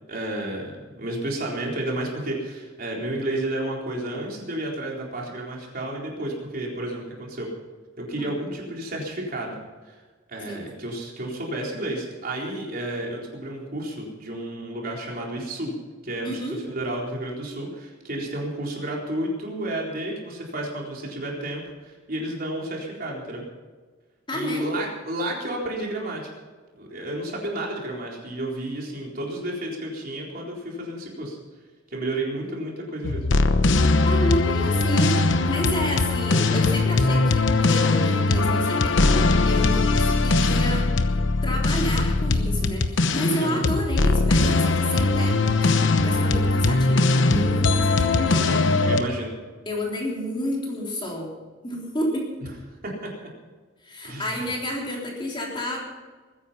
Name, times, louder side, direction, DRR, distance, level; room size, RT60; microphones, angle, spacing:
voice 1, 0.1-7.5 8.0-9.6 9.9-10.0 10.3-15.7 16.0-16.4 16.7-23.4 24.3-26.3 26.8-31.4 31.9-33.3 37.8-38.0 43.4-43.6 48.5-49.4 52.8-53.3 54.0-54.5, right 1 dB, 50° right, -2 dB, 4.1 m, -31 dB
voice 2, 16.2-16.6 24.3-24.7 34.0-40.9 41.4-45.7 46.0-48.5 49.7-51.3 51.6-52.3 53.8-55.8, equal, 25° left, -2 dB, 3.7 m, -30 dB
sound 1, 33.0-49.0, left 3 dB, 65° left, 1.0 m, -21 dB
21.5 x 10.0 x 5.7 m, 1.4 s
head